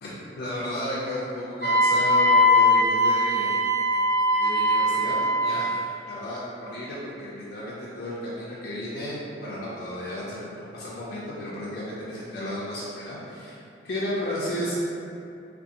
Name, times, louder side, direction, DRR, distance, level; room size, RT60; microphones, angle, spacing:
voice 1, 0.0-3.7 4.4-9.1 9.4-13.6 13.8-14.7, left 1 dB, 60° left, -8 dB, 0.4 m, -33 dB
Wind instrument woodwind instrument, 1.6-5.7, left 1 dB, 60° right, 1.2 m, -21 dB
2.5 x 2.3 x 2.7 m, 2.6 s
head